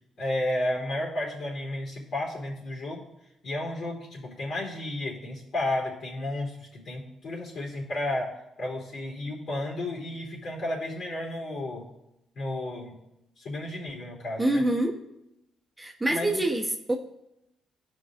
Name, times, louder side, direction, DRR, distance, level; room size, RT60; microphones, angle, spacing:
voice 1, 0.2-3.0 3.4-8.3 8.6-11.9 12.3-12.9 13.4-14.6 16.1-16.5, left 1 dB, 60° left, -3 dB, 3.4 m, -32 dB
voice 2, 14.4-15.0 15.8-16.9, right 1 dB, 10° right, 0 dB, 1.0 m, -26 dB
15.5 x 5.4 x 2.5 m, 0.86 s
cardioid pair, 90°, 0 cm